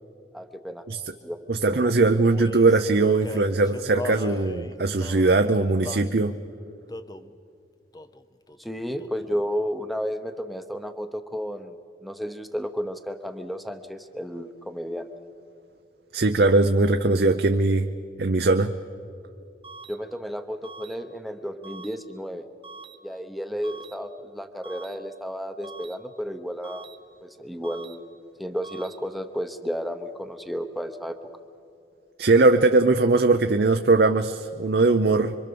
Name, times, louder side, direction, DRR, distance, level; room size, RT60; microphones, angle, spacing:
voice 1, 0.3-0.8 1.2-1.8 8.6-11.7 12.0-15.1 19.9-22.5 23.0-26.9 27.2-28.1 28.4-31.2, equal, ahead, 7 dB, 0.9 m, -32 dB
voice 2, 1.5-6.3 16.1-17.9 18.2-18.7 32.2-35.4, right 3 dB, 60° right, 6 dB, 0.7 m, -20 dB
Male singing, 1.8-6.2 6.9-7.3 7.9-8.2 8.5-9.4, left 2 dB, 20° left, 0.7 m, -38 dB
sound 1, 19.6-19.9 20.6-20.9 21.6-21.9 22.6-22.9 23.6-23.9 24.6-24.9 25.6-25.9 26.6-26.9 27.6-27.9 28.6-28.9, right 4 dB, 30° right, 1.2 m, -43 dB
26.5 x 24.0 x 7.0 m, 2.5 s
head